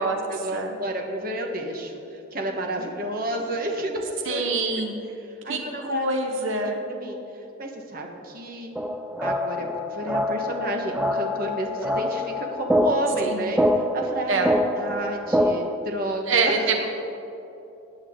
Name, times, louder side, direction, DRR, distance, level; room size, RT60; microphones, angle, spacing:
voice 1, 0.3-4.4 4.7-4.8 5.4-6.1 6.6-7.2 7.6-8.7 9.2-16.5, right 1 dB, 50° right, 2 dB, 1.3 m, -31 dB
voice 2, 4.2-5.0 5.5-6.8 13.2-13.5 14.3-14.5 16.3-16.9, right 3 dB, 85° right, 4 dB, 1.0 m, -25 dB
sound 1, 8.8-15.8, equal, 5° right, 0.4 m, -25 dB
17.5 x 9.3 x 3.7 m, 2.9 s
head